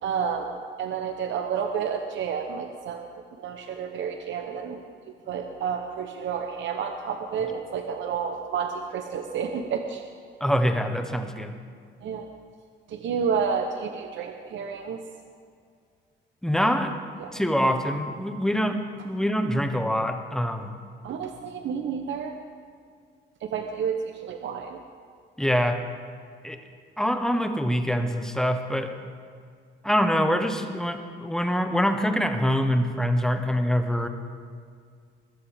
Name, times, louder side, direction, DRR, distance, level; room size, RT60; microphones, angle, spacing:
voice 1, 0.0-4.8 5.1-10.0 12.0-12.3 12.9-15.0 17.2-17.3 21.0-22.4 23.4-24.8, right 6 dB, 70° right, 5 dB, 0.9 m, -30 dB
voice 2, 10.4-11.5 16.4-16.9 17.3-20.7 25.4-25.8 26.4-26.6 27.0-28.9 29.8-34.1, equal, 5° left, 6 dB, 1.2 m, -25 dB
21.0 x 12.5 x 3.6 m, 2.2 s
cardioid pair, 90°, 20 cm